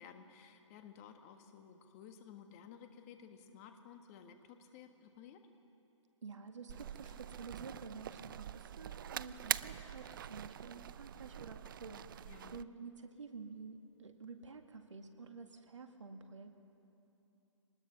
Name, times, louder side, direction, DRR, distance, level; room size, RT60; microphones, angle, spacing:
voice 1, 0.0-5.4 7.1-7.2 12.2-12.7, left 7 dB, 30° left, 7 dB, 1.5 m, -55 dB
voice 2, 6.2-16.5, right 4 dB, 70° right, 6 dB, 1.9 m, -50 dB
sound 1, 6.7-12.6, right 10 dB, 45° right, 0.4 m, -44 dB
24.0 x 20.0 x 6.0 m, 2.9 s
figure-of-eight pair, 135°, 16 cm